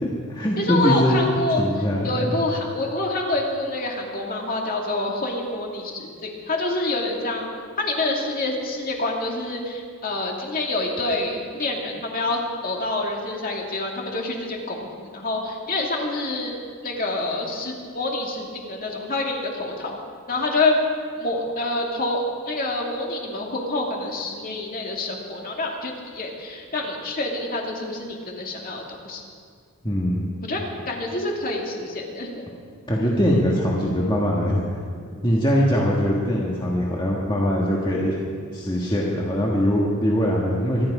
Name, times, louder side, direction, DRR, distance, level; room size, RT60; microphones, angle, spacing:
voice 1, 0.0-1.2 1.6-2.4 29.8-30.3 32.9-34.6 35.2-38.2 38.5-40.9, equal, 20° left, -4 dB, 1.6 m, -22 dB
voice 2, 0.6-1.6 2.0-7.5 7.8-16.5 16.8-20.0 20.3-20.8 21.2-29.2 30.4-32.5, left 2 dB, 40° left, 0 dB, 2.3 m, -27 dB
25.5 x 10.5 x 4.9 m, 2.1 s
head